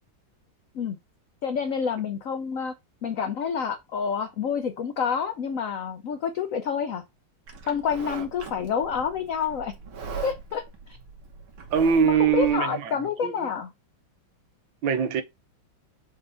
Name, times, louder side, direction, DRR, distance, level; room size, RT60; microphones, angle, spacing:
voice 1, 1.4-2.7 3.0-7.0 7.7-9.7 10.2-11.0 12.0-13.7, left 6 dB, 85° left, 0.7 m, -28 dB
Livestock farm animals working animals, 7.5-12.5, right 5 dB, 90° right, 2.2 m, -41 dB
voice 2, 11.7-13.5 14.8-15.2, right 7 dB, 70° right, 1.6 m, -23 dB
5.2 x 3.4 x 5.4 m
omnidirectional pair, 2.2 m